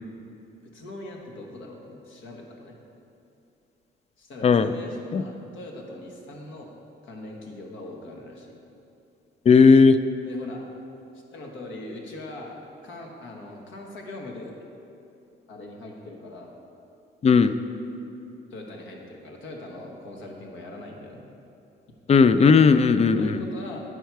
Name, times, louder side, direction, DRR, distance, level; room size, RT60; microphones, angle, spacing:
voice 1, 0.6-2.7 4.2-6.7 7.0-8.6 10.2-10.6 11.3-12.6 12.8-14.6 15.5-16.5 18.5-21.2 23.2-23.8, left 2 dB, 75° left, 0 dB, 1.2 m, -41 dB
voice 2, 9.5-10.0 17.2-17.6 22.1-23.4, left 5 dB, 35° left, 12 dB, 0.3 m, -16 dB
9.8 x 4.6 x 4.6 m, 2.7 s
cardioid pair, 90°, 20 cm